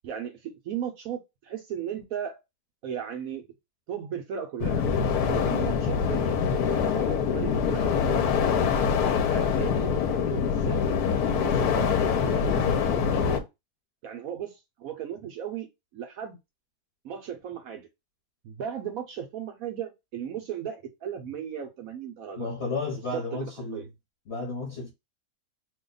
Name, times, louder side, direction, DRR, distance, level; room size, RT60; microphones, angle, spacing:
voice 1, 0.0-2.4 2.8-3.5 3.9-4.8 5.3-8.4 9.3-12.0 12.2-13.5 14.0-15.7 15.9-16.4 17.0-17.9 18.4-22.5 23.1-23.9, right 9 dB, 70° right, 0.9 m, -36 dB
sound 1, 4.6-13.4, left 6 dB, 70° left, 1.1 m, -24 dB
voice 2, 22.4-23.9 24.3-24.9, left 3 dB, 50° left, 1.0 m, -32 dB
2.8 x 2.2 x 3.7 m
omnidirectional pair, 1.8 m